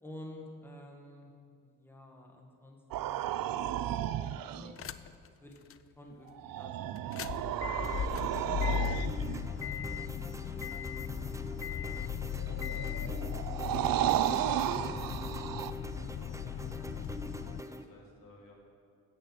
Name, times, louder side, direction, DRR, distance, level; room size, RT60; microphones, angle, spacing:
voice 1, 0.0-1.3 1.6-4.8 5.4-5.6 6.0-11.2 11.6-12.0 12.6-14.9, left 1 dB, 5° left, 0 dB, 1.8 m, -53 dB
sound 1, 2.9-4.7 6.3-9.5 12.3-15.7, right 12 dB, 80° right, 0.5 m, -33 dB
sound 2, 4.8-5.3 5.7-5.8 7.0-17.6, left 10 dB, 40° left, 0.5 m, -37 dB
sound 3, 7.8-17.8, right 1 dB, 10° right, 0.6 m, -44 dB
voice 2, 16.2-16.7 17.4-18.5, left 2 dB, 75° left, -1 dB, 2.5 m, -58 dB
9.8 x 8.5 x 7.5 m, 2.4 s
cardioid pair, 80°, 34 cm